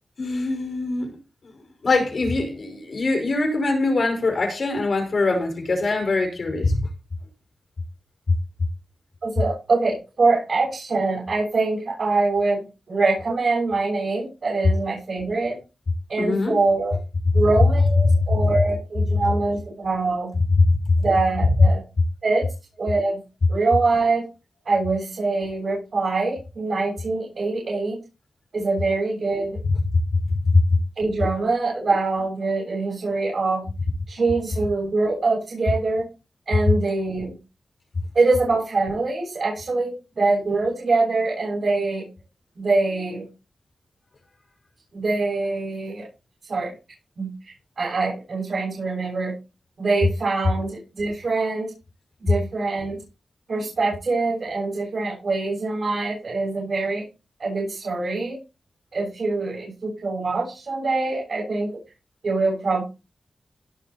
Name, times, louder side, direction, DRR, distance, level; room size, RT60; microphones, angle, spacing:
voice 1, 0.2-1.1 1.8-6.8 16.2-16.6 20.8-20.9 29.9-30.6, left 3 dB, 50° left, 5.3 m, -22 dB
voice 2, 9.2-15.6 16.1-17.0 17.3-20.3 21.0-21.8 22.2-22.5 22.8-23.2 23.5-24.2 24.6-28.0 28.5-29.6 31.0-33.6 34.1-36.0 36.5-37.3 38.1-42.0 42.5-43.3 44.9-46.1 46.5-46.7 47.2-49.3 49.8-51.7 52.2-53.0 53.5-57.0 57.4-58.4 58.9-61.7 62.2-62.8, right 3 dB, 55° right, 6.8 m, -24 dB
17.5 x 6.4 x 4.3 m
wide cardioid pair, 160°, 0 cm